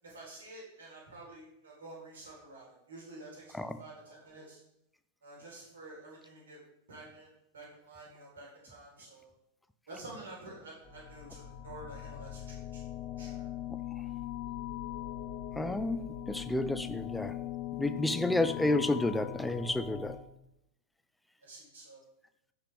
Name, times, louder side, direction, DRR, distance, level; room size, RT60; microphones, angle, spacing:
voice 1, 0.0-4.6 5.2-6.6 6.9-9.3 9.9-12.8 13.2-13.4 21.4-22.1, right 2 dB, 65° right, -4 dB, 4.4 m, -49 dB
sound 1, 10.8-20.2, left 13 dB, 30° left, 1.3 m, -40 dB
voice 2, 15.6-17.4 17.8-20.2, left 2 dB, 5° left, 10 dB, 0.6 m, -31 dB
16.0 x 5.7 x 3.6 m, 0.82 s
figure-of-eight pair, 90°, 0 cm